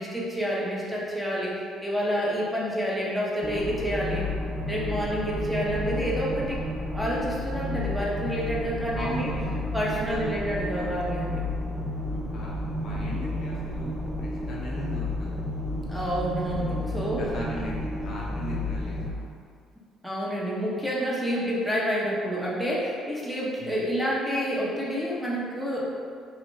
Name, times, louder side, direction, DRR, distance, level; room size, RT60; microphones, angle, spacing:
voice 1, 0.0-4.2 4.7-6.6 6.9-9.3 9.7-11.4 15.9-17.2 20.0-26.0, equal, ahead, -6 dB, 0.8 m, -29 dB
sound 1, 3.4-19.1, left 1 dB, 20° right, 0.4 m, -31 dB
voice 2, 8.9-11.0 12.3-15.3 16.9-19.4 23.6-23.9, equal, 60° left, -4 dB, 0.6 m, -39 dB
2.4 x 2.3 x 3.7 m, 2.2 s
hypercardioid pair, 60°, 0 cm